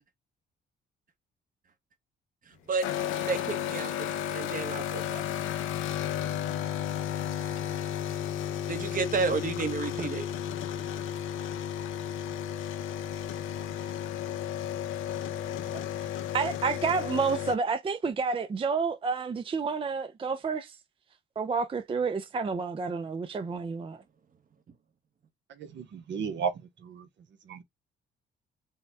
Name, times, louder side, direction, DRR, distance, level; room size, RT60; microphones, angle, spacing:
sound 1, 2.8-17.6, left 10 dB, 90° left, 0.7 m, -33 dB
voice 1, 3.3-5.2 8.7-10.2, right 4 dB, 45° right, 1.1 m, -31 dB
voice 2, 16.3-20.8 21.4-24.0, right 5 dB, 25° right, 0.5 m, -30 dB
voice 3, 25.8-26.5 26.8-27.0 27.5-27.6, right 6 dB, 65° right, 0.9 m, -32 dB
5.5 x 2.2 x 3.3 m
cardioid pair, 90°, 20 cm